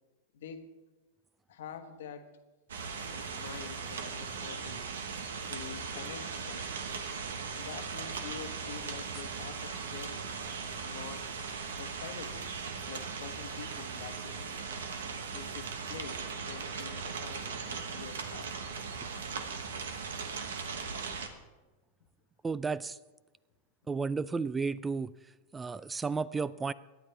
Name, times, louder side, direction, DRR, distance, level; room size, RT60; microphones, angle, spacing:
voice 1, 0.3-0.8 1.5-2.4 3.1-4.9 5.5-6.7 7.5-10.3 10.8-11.3 11.8-12.5 12.9-14.6 15.3-18.7, left 8 dB, 75° left, 8 dB, 1.1 m, -47 dB
sound 1, 2.7-21.3, right 5 dB, 85° right, 1.2 m, -38 dB
voice 2, 22.4-23.0 23.9-25.1 25.5-26.7, right 4 dB, 15° right, 19 dB, 0.3 m, -32 dB
17.5 x 10.5 x 3.3 m, 1.2 s
hypercardioid pair, 110°, 0 cm